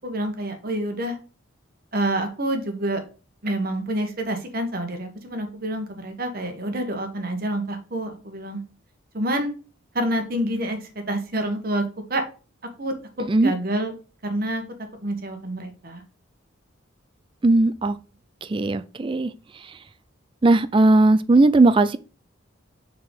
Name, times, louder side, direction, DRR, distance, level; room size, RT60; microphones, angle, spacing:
voice 1, 0.0-1.2 1.9-3.0 3.4-8.6 9.1-9.5 9.9-12.2 12.8-13.9 14.2-14.6 15.0-16.0, right 1 dB, 45° right, 1.2 m, -27 dB
voice 2, 17.4-18.0 18.4-19.3 20.4-22.0, right 2 dB, 25° right, 0.3 m, -17 dB
4.8 x 4.5 x 5.4 m
head